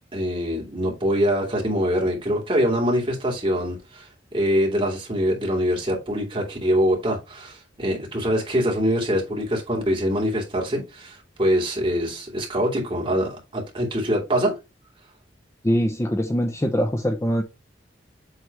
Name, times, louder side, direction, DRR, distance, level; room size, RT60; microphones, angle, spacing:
voice 1, 0.1-14.6, equal, 30° right, 2.6 m, -24 dB
voice 2, 15.6-17.4, equal, 15° left, 0.7 m, -23 dB
8.0 x 3.3 x 4.5 m
head